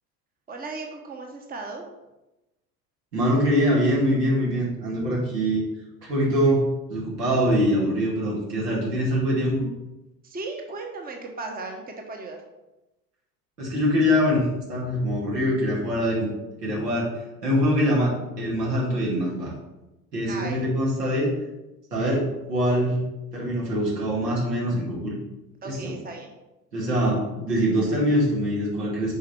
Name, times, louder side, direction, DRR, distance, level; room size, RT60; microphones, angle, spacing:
voice 1, 0.5-1.9 10.2-12.4 20.3-20.6 25.6-26.3, right 3 dB, 20° right, 3 dB, 1.1 m, -36 dB
voice 2, 3.1-5.6 6.0-9.7 13.6-16.3 16.6-17.1 17.4-19.5 20.1-21.3 21.9-23.0 23.3-25.2 25.6-25.9 26.7-29.2, equal, 80° right, -5 dB, 2.6 m, -23 dB
6.6 x 5.2 x 4.5 m, 0.99 s
figure-of-eight pair, 65°, 47 cm